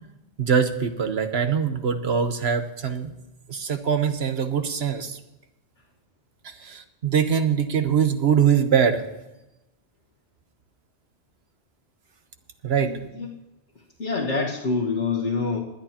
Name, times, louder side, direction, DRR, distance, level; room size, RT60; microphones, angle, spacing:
voice 1, 0.4-3.1 3.5-5.2 6.4-9.0 12.6-13.0, right 7 dB, 65° right, 8 dB, 1.3 m, -23 dB
voice 2, 12.8-13.3 14.0-15.6, left 4 dB, 85° left, -5 dB, 1.9 m, -26 dB
19.5 x 11.5 x 2.9 m, 0.95 s
omnidirectional pair, 1.2 m